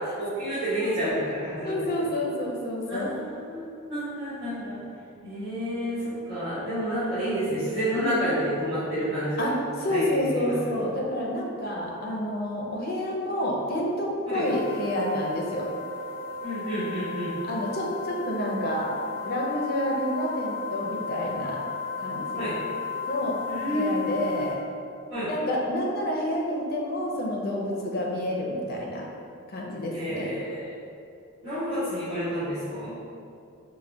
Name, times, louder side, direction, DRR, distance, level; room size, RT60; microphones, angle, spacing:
voice 1, 0.2-1.9 2.9-4.8 5.2-9.5 9.9-10.7 14.3-14.4 16.4-17.3 22.4-22.6 23.4-24.1 25.1-25.3 29.9-30.6 31.4-32.9, equal, 60° right, -16 dB, 1.4 m, -29 dB
voice 2, 0.8-1.1 1.6-3.1 9.4-15.7 17.5-18.9 19.2-21.6 22.0-22.5 23.1-23.4 23.7-24.6 25.3-29.1 29.5-30.3, left 1 dB, 45° left, -2 dB, 0.5 m, -29 dB
sound 1, 14.4-24.5, left 4 dB, 30° right, 0.9 m, -35 dB
3.8 x 2.2 x 3.3 m, 2.4 s
head